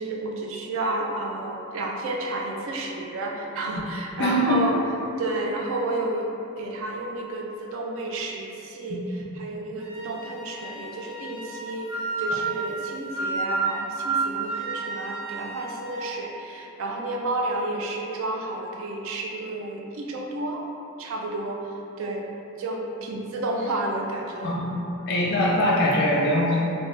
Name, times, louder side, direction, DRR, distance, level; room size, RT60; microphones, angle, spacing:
voice 1, 0.0-4.8 5.2-6.3 6.6-20.6 21.0-22.3 22.6-24.5, right 2 dB, 60° right, 0 dB, 0.3 m, -31 dB
voice 2, 4.2-4.6 8.9-9.0 24.4-24.7 25.1-26.7, left 1 dB, 45° left, -3 dB, 0.4 m, -22 dB
Wind instrument woodwind instrument, 9.8-16.2, right 4 dB, 25° right, 0.6 m, -31 dB
2.5 x 2.1 x 3.2 m, 2.8 s
head